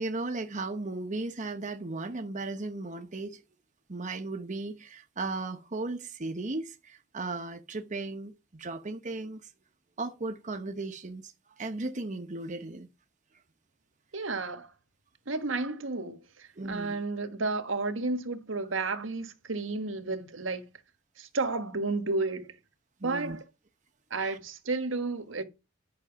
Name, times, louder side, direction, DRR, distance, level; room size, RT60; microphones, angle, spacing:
voice 1, 0.0-3.4 3.9-9.5 10.0-12.9 16.6-17.0 23.0-23.4 24.2-24.4, right 2 dB, 40° right, 1.0 m, -36 dB
voice 2, 14.1-14.7 15.3-20.7 21.2-22.5 23.0-23.4 24.1-25.4, right 3 dB, 80° right, 1.5 m, -32 dB
11.0 x 6.2 x 5.9 m
head